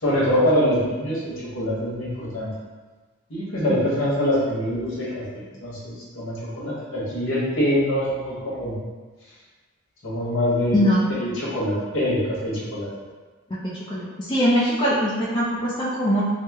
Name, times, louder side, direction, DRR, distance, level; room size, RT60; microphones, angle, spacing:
voice 1, 0.0-2.5 3.3-8.7 10.0-10.8 11.1-12.9, equal, 65° left, -7 dB, 1.0 m, -24 dB
voice 2, 10.7-11.1 13.6-16.2, equal, 20° left, -7 dB, 0.4 m, -22 dB
2.9 x 2.0 x 3.4 m, 1.3 s
head